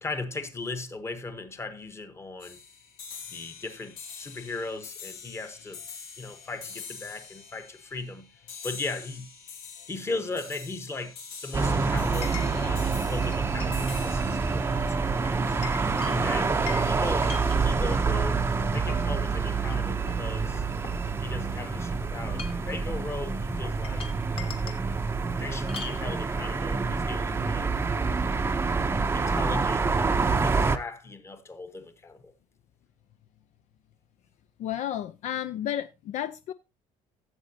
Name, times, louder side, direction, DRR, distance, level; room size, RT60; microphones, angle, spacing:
voice 1, 0.0-2.6 3.3-5.8 6.2-8.3 8.6-9.3 9.9-15.6 16.0-18.4 18.7-20.6 21.2-24.1 25.4-27.8 29.1-29.9 30.4-32.3, left 3 dB, 20° left, 1.1 m, -37 dB
sound 1, 2.4-15.9, left 6 dB, 75° left, 3.7 m, -45 dB
Chink clink, 8.7-8.8 12.2-12.7 13.2-14.0 14.3-14.6 15.2-18.0 18.6-19.1 19.6-19.7 20.1-21.5 22.2-22.7 23.6-24.8 25.7-26.0, left 7 dB, 40° left, 1.5 m, -41 dB
sound 2, 11.5-30.8, right 4 dB, 15° right, 0.6 m, -27 dB
voice 2, 34.6-36.5, left 11 dB, 60° left, 0.5 m, -32 dB
15.5 x 7.5 x 2.7 m
cardioid pair, 145°, 14 cm